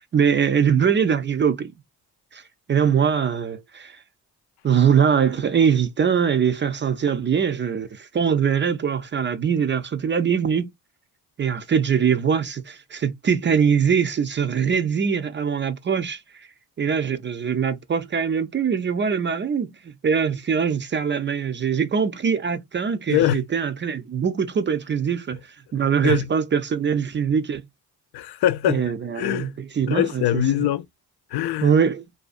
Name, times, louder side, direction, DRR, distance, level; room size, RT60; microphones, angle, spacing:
voice 1, 0.0-1.7 2.3-2.4 2.7-4.0 4.6-10.7 11.4-16.2 16.8-25.4 25.7-27.6 28.6-30.4 31.6-32.1, right 7 dB, 30° right, 0.4 m, -22 dB
voice 2, 23.1-23.4 26.0-26.2 28.1-28.8 29.2-29.5 29.9-30.9 31.3-31.7, left 12 dB, 75° left, 0.5 m, -22 dB
2.5 x 2.3 x 2.4 m
cardioid pair, 80°, 40 cm